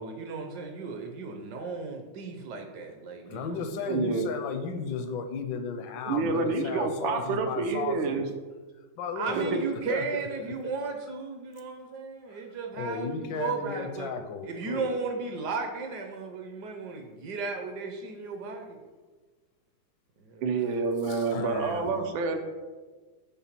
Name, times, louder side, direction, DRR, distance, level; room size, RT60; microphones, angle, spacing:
voice 1, 0.0-3.6 9.1-14.1 14.4-18.8 20.2-20.4, right 4 dB, 65° right, 4 dB, 1.2 m, -35 dB
voice 2, 3.3-8.2 9.0-9.6 9.9-10.0 12.8-15.0 21.1-22.4, left 5 dB, 75° left, 6 dB, 1.3 m, -34 dB
voice 3, 3.9-4.3 6.0-8.3 9.4-9.6 20.4-22.4, right 4 dB, 90° right, 5 dB, 1.5 m, -28 dB
5.9 x 3.4 x 5.9 m, 1.4 s
omnidirectional pair, 2.1 m